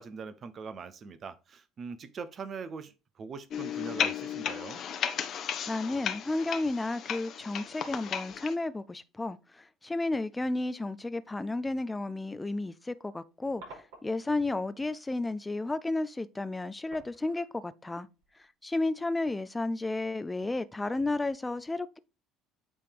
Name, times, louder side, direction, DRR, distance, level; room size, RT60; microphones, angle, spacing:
voice 1, 0.0-4.8, right 5 dB, 45° right, 0.8 m, -42 dB
sound 1, 2.2-2.4 4.7-5.9 6.3-6.4 6.9-7.0 7.9-8.5 8.9-9.2 10.2-10.5 10.8-11.0 11.5-11.6 11.9-14.5 14.8-15.2 16.4-16.5 16.9-19.1 19.5-19.8 20.3-20.4, right 2 dB, 80° right, 4.8 m, -56 dB
sound 2, 3.5-8.5, left 9 dB, 55° left, 0.9 m, -34 dB
voice 2, 5.7-18.1 18.4-22.0, left 2 dB, 15° left, 0.5 m, -32 dB
8.7 x 3.4 x 4.7 m
hypercardioid pair, 65°, 0 cm